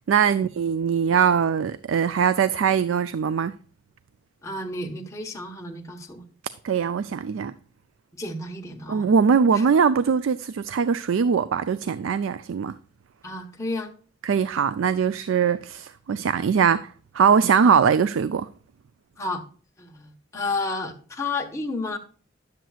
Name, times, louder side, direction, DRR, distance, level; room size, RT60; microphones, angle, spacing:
voice 1, 0.1-3.5 6.6-7.5 8.9-12.8 14.2-18.5, right 6 dB, 80° right, 0.4 m, -21 dB
voice 2, 4.4-6.2 8.2-9.1 9.5-9.6 13.2-13.9 17.6-17.7 19.2-19.4 19.8-22.0, left 2 dB, 15° left, 1.1 m, -31 dB
10.5 x 7.6 x 2.4 m
head